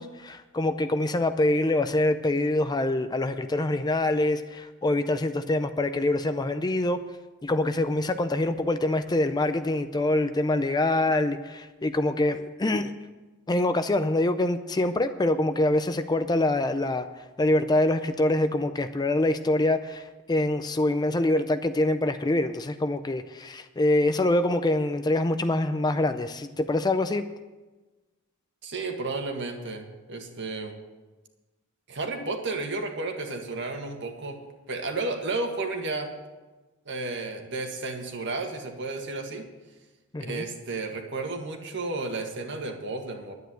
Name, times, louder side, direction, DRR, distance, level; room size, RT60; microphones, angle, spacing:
voice 1, 0.0-7.0 7.4-12.9 13.5-17.1 17.4-27.3 40.1-40.4, left 2 dB, 20° left, 10 dB, 0.4 m, -25 dB
voice 2, 28.6-30.7 31.9-34.4 34.7-36.1 36.8-39.4 40.2-43.3, right 3 dB, 55° right, 3 dB, 1.8 m, -32 dB
11.0 x 9.3 x 7.7 m, 1.2 s
head